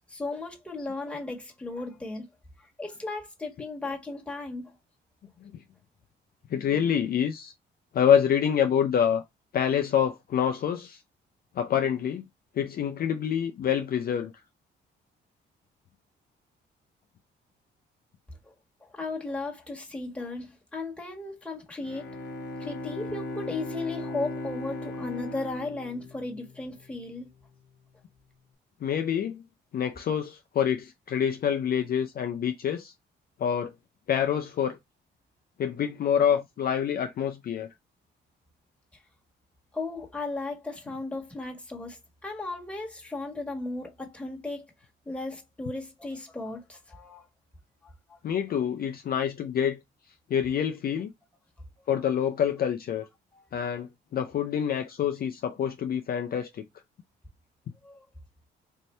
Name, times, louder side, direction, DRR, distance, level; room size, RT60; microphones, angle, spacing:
voice 1, 0.1-2.3 2.6-4.7 18.4-18.5 18.8-22.1 22.6-27.3 39.7-44.7 45.0-47.3 47.8-48.2 57.8-58.0, left 3 dB, 5° left, 1.5 m, -36 dB
voice 2, 6.5-7.5 7.9-9.2 9.5-11.0 11.6-12.2 12.6-14.3 28.8-29.4 29.7-32.9 33.4-33.7 34.1-34.8 35.6-37.7 48.2-49.8 50.3-51.1 51.9-53.1 53.5-56.6, left 8 dB, 50° left, 0.5 m, -26 dB
Bowed string instrument, 21.8-27.0, left 2 dB, 70° left, 1.0 m, -37 dB
4.4 x 2.6 x 3.2 m
cardioid pair, 90°, 20 cm